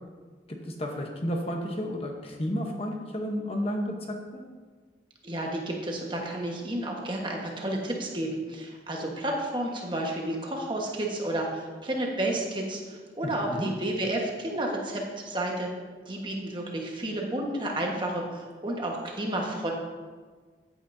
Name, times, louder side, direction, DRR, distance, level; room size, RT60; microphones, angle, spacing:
voice 1, 0.5-4.4 13.2-13.7, equal, 30° left, 2 dB, 1.0 m, -32 dB
voice 2, 5.2-15.7 16.1-19.7, right 1 dB, 25° right, -1 dB, 1.4 m, -31 dB
14.5 x 9.1 x 2.7 m, 1.5 s
head